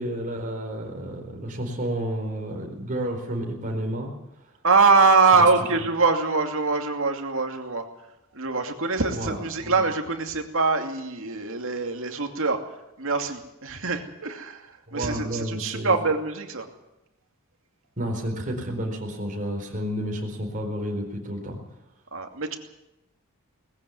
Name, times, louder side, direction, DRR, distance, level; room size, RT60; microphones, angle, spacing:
voice 1, 0.0-4.1 9.1-9.8 14.9-15.9 18.0-21.6, equal, 35° right, 0 dB, 4.3 m, -31 dB
voice 2, 4.6-7.8 8.3-12.6 13.0-16.7 22.1-22.6, right 4 dB, 65° right, 4 dB, 2.6 m, -23 dB
19.5 x 15.0 x 9.5 m, 0.90 s
head